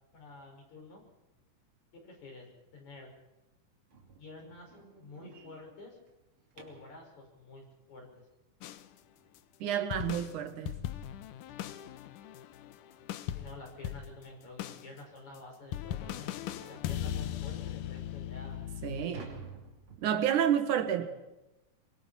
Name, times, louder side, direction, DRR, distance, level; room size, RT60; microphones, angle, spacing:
voice 1, 0.1-1.0 1.9-2.5 2.7-3.1 4.1-6.0 6.5-8.3 13.3-18.6 19.0-19.4 20.9-21.1, left 2 dB, 65° left, 7.4 m, -50 dB
sound 1, 3.9-7.0 9.8-9.9 10.4-10.6 10.9-11.0 11.5-11.6 12.7-12.8 13.2-13.4 14.0-14.1 14.5-14.6 15.1-15.2 16.6-16.9 17.6-17.7 18.2-20.5, right 5 dB, 40° right, 3.7 m, -52 dB
sound 2, 8.6-8.9 9.3-9.4 9.9-14.3 14.6-14.9 15.4-15.5 15.7-19.1, left 11 dB, 80° left, 2.4 m, -39 dB
voice 2, 9.6-10.9 18.8-19.2 20.0-21.1, right 9 dB, 75° right, 3.0 m, -30 dB
25.0 x 23.5 x 4.5 m
omnidirectional pair, 3.6 m